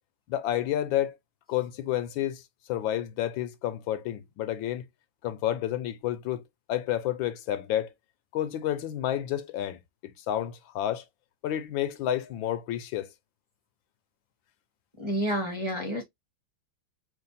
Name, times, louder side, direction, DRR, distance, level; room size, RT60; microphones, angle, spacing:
voice 1, 0.3-1.2 1.5-2.4 2.7-4.8 5.2-6.4 6.7-7.9 8.3-9.8 10.2-11.0 11.4-13.1, left 12 dB, 80° left, 1.3 m, -30 dB
voice 2, 15.0-16.0, equal, 20° right, 1.1 m, -29 dB
3.9 x 2.4 x 4.0 m
omnidirectional pair, 2.2 m